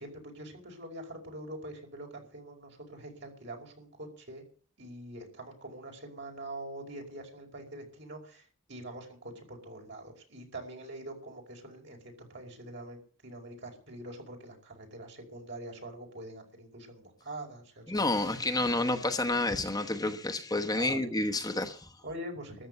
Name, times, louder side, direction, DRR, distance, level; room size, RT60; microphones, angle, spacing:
voice 1, 0.0-4.4 4.8-12.0 12.3-17.8 20.7-21.0 22.0-22.7, right 1 dB, 60° right, 5.2 m, -44 dB
voice 2, 17.9-21.9, left 2 dB, 20° left, 1.0 m, -29 dB
14.0 x 10.0 x 8.1 m
head